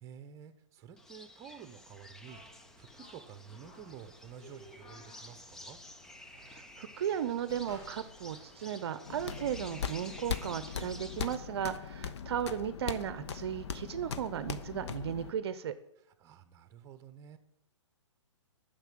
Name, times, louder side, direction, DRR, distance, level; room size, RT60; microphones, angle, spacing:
voice 1, 0.0-2.4 2.8-5.8 16.2-17.4, right 8 dB, 20° right, 11 dB, 0.8 m, -51 dB
sound 1, 1.0-11.4, left 1 dB, 5° left, 0.3 m, -52 dB
sound 2, 2.2-9.4, equal, 35° left, 3.1 m, -57 dB
voice 2, 6.4-15.7, right 9 dB, 55° right, 13 dB, 0.6 m, -36 dB
sound 3, 9.1-15.3, left 7 dB, 60° left, 0.8 m, -39 dB
9.1 x 6.7 x 7.6 m, 0.83 s
hypercardioid pair, 130°, 16 cm